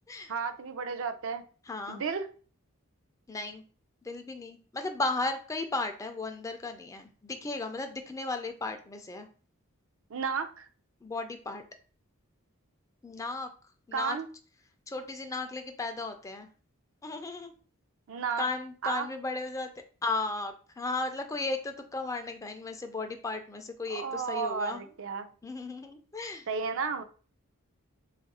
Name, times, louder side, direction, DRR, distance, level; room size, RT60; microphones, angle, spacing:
voice 1, 0.3-1.4 1.9-2.3 10.1-10.7 13.9-14.3 18.1-18.4 18.8-19.1 23.9-25.3 26.5-27.0, right 5 dB, 65° right, 0.4 m, -32 dB
voice 2, 1.6-2.0 3.3-3.6 4.0-9.3 11.0-11.6 13.0-13.5 13.9-14.2 14.9-16.5 17.0-17.5 18.4-19.7 20.0-24.9 25.4-26.5, left 3 dB, 15° left, 0.3 m, -35 dB
3.7 x 2.4 x 4.1 m
head